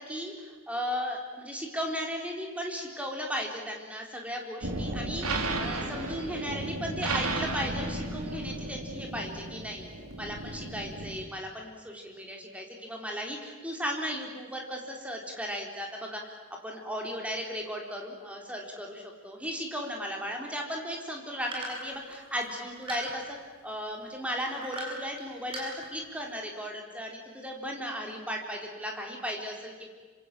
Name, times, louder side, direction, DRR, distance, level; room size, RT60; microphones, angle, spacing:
voice 1, 0.0-9.9 10.2-16.3 16.6-29.9, equal, 5° right, 1 dB, 4.1 m, -36 dB
sound 1, 4.6-11.2, right 2 dB, 80° right, 3.5 m, -34 dB
sound 2, 21.5-23.5 24.4-25.2 25.5-26.2, right 1 dB, 25° right, 6.8 m, -39 dB
27.0 x 26.0 x 7.8 m, 1.4 s
head